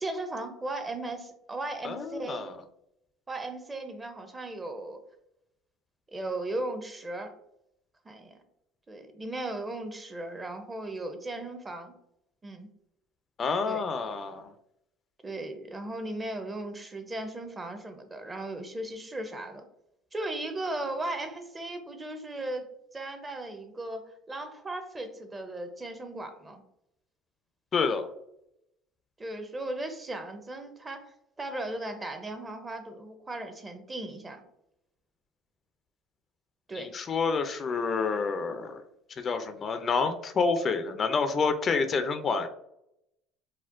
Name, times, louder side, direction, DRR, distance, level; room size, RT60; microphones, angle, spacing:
voice 1, 0.0-2.5 3.3-5.0 6.1-7.3 8.0-8.4 8.9-11.9 12.4-12.7 13.6-13.8 15.2-19.6 20.1-22.7 22.9-26.6 29.2-31.1 31.4-34.4 36.7-36.9, right 2 dB, 20° right, 7 dB, 0.6 m, -37 dB
voice 2, 1.8-2.6 13.4-14.5 27.7-28.1 36.7-38.8 39.2-42.5, left 4 dB, 40° left, 9 dB, 0.4 m, -28 dB
4.2 x 2.1 x 2.4 m, 0.78 s
supercardioid pair, 85°, 0 cm